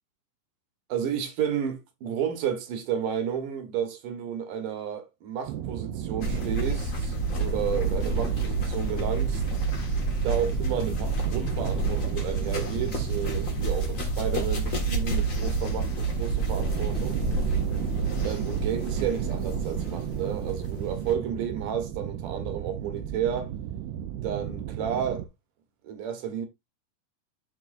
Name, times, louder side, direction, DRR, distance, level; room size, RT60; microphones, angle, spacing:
voice 1, 0.9-9.4 10.2-17.2 18.2-23.5 24.2-25.3 25.8-26.5, right 8 dB, 65° right, 2.6 m, -32 dB
sound 1, 5.5-25.3, right 11 dB, 80° right, 2.6 m, -35 dB
sound 2, 6.2-21.1, right 3 dB, 65° left, 0.8 m, -29 dB
13.0 x 4.4 x 2.6 m
omnidirectional pair, 4.6 m